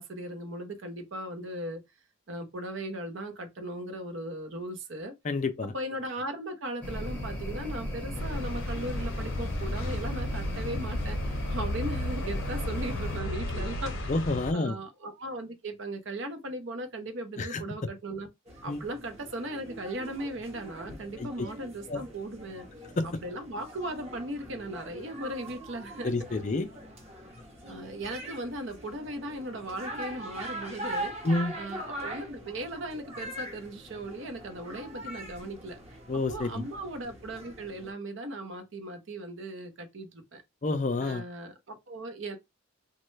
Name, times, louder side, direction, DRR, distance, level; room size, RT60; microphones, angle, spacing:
voice 1, 0.0-1.8 2.3-5.1 5.7-14.1 14.5-18.3 18.6-22.6 23.0-26.4 27.7-31.2 31.6-35.8 36.1-40.4 41.0-42.4, right 1 dB, 55° right, 0.7 m, -38 dB
voice 2, 5.2-5.7 14.1-14.8 17.4-17.6 18.7-18.8 21.2-21.5 21.9-22.0 23.0-23.1 26.0-26.7 31.2-31.5 36.1-36.6 40.6-41.2, left 2 dB, 35° left, 0.4 m, -29 dB
sound 1, 6.8-13.2, left 1 dB, 5° left, 0.8 m, -36 dB
sound 2, 8.1-14.5, left 1 dB, 60° left, 0.7 m, -34 dB
sound 3, 18.5-37.9, right 1 dB, 30° right, 0.9 m, -42 dB
3.1 x 2.2 x 3.1 m
head